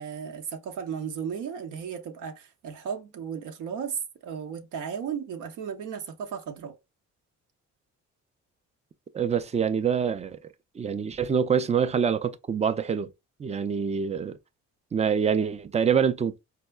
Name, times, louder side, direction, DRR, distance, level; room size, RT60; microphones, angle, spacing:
voice 1, 0.0-6.7, right 7 dB, 85° right, 0.7 m, -35 dB
voice 2, 9.1-10.4 10.8-13.1 13.4-14.4 14.9-16.4, right 7 dB, 25° right, 0.3 m, -25 dB
4.5 x 2.1 x 2.2 m
cardioid pair, 90°, 30 cm